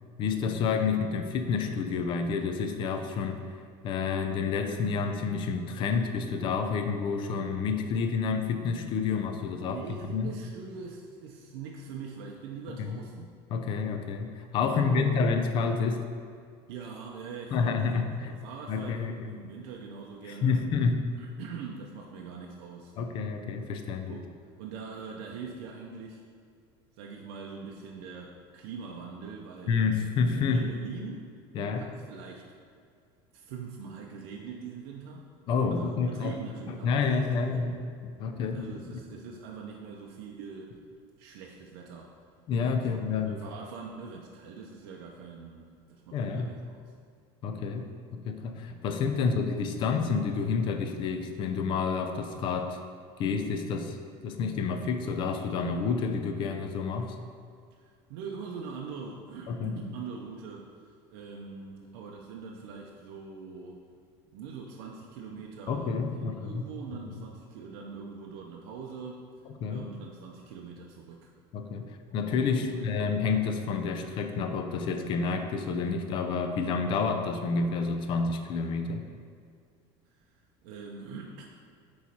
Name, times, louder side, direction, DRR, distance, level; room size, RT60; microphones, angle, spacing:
voice 1, 0.2-3.4 3.8-9.8 10.1-10.3 12.8-13.0 13.5-16.0 17.5-18.3 18.7-19.3 20.2-21.1 23.0-24.2 29.7-30.7 31.5-31.9 35.5-36.4 36.7-37.8 38.2-39.0 42.5-43.4 46.1-46.5 47.4-52.8 53.2-54.0 54.2-57.2 59.5-59.7 65.7-66.7 66.9-67.0 69.6-69.9 71.5-79.0, left 5 dB, 40° left, 6 dB, 0.5 m, -29 dB
voice 2, 9.5-13.4 14.6-15.3 16.7-17.8 18.2-20.6 21.1-22.9 24.1-26.2 27.0-29.8 30.4-31.3 31.7-32.5 33.3-35.3 35.7-37.8 38.5-40.8 41.2-42.2 42.9-46.9 49.1-49.4 57.7-63.8 64.3-69.2 69.7-71.3 72.4-73.1 80.1-81.5, right 5 dB, 70° right, -1 dB, 0.6 m, -43 dB
8.1 x 3.2 x 4.2 m, 2.2 s
cardioid pair, 155°, 13 cm